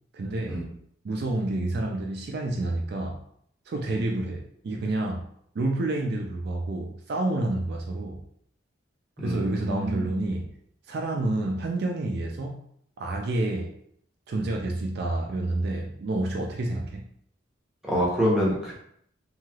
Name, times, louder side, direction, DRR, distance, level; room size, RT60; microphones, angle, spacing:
voice 1, 0.1-0.6 1.0-3.2 3.7-5.3 5.5-8.2 9.2-10.5 10.9-12.6 13.0-13.8 14.3-17.1, right 2 dB, 50° right, 1 dB, 0.3 m, -29 dB
voice 2, 9.2-10.1 17.8-18.7, equal, 5° right, -6 dB, 0.8 m, -26 dB
3.1 x 2.7 x 2.3 m, 0.68 s
head